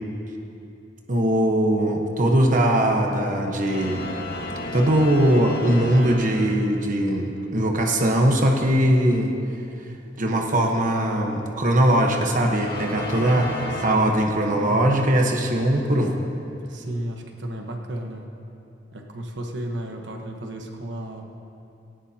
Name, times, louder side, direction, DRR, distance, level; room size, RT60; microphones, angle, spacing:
voice 1, 1.1-4.0 4.7-9.3 10.2-13.5 13.8-16.1, right 1 dB, 45° right, 1 dB, 1.2 m, -20 dB
sound 1, 3.6-7.0 12.5-13.9, left 2 dB, 60° left, 1.5 m, -33 dB
voice 2, 13.2-14.8 16.7-18.3 18.9-21.2, right 1 dB, 90° right, 2 dB, 1.2 m, -33 dB
18.0 x 16.0 x 2.9 m, 2.7 s
head